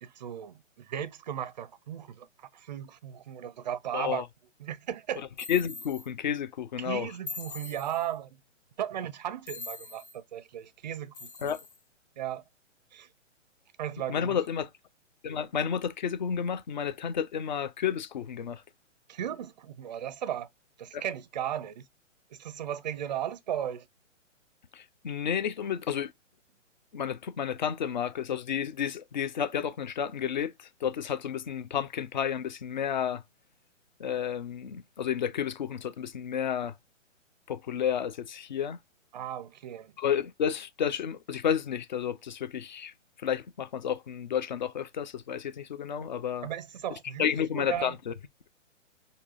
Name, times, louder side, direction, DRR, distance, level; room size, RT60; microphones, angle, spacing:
voice 1, 0.0-4.2 4.6-5.2 6.8-8.3 8.8-11.6 12.2-12.4 12.9-13.1 13.8-14.4 19.1-20.5 20.8-21.8 22.3-23.9 39.1-39.9 46.4-48.0, right 10 dB, 35° right, 0.4 m, -36 dB
voice 2, 3.9-4.2 5.5-7.1 11.4-11.6 14.1-14.7 15.2-18.6 20.9-21.0 24.7-26.1 26.9-33.2 34.0-36.7 37.5-38.8 40.0-42.9 43.2-46.5 47.2-48.1, left 8 dB, 40° left, 0.4 m, -31 dB
sound 1, 5.4-6.1 7.3-8.1 9.5-10.2 11.1-11.8, left 3 dB, 65° left, 1.2 m, -42 dB
4.6 x 2.7 x 2.4 m
figure-of-eight pair, 135°, 38 cm